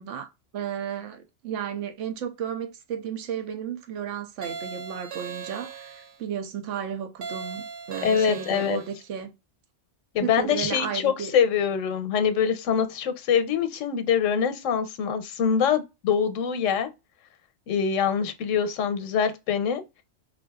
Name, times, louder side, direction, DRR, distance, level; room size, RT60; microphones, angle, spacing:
voice 1, 0.0-9.3 10.2-11.3, right 8 dB, 75° right, 1.0 m, -33 dB
sound 1, 4.4-6.2 7.2-9.0, right 6 dB, 60° right, 0.5 m, -38 dB
voice 2, 8.0-8.8 10.1-16.9 17.7-19.8, left 7 dB, 85° left, 1.0 m, -24 dB
3.7 x 2.6 x 2.2 m
omnidirectional pair, 1.3 m